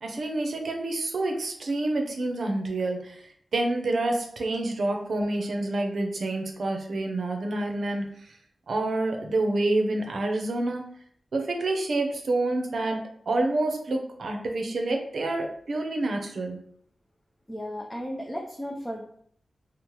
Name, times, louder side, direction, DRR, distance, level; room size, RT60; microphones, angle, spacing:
voice 1, 0.0-8.1 8.7-10.8 11.3-13.0 13.3-16.6, right 2 dB, 70° right, 3 dB, 0.5 m, -28 dB
voice 2, 17.5-19.0, equal, 10° left, 0 dB, 0.3 m, -34 dB
2.8 x 2.0 x 3.0 m, 0.64 s
wide cardioid pair, 115°, 0 cm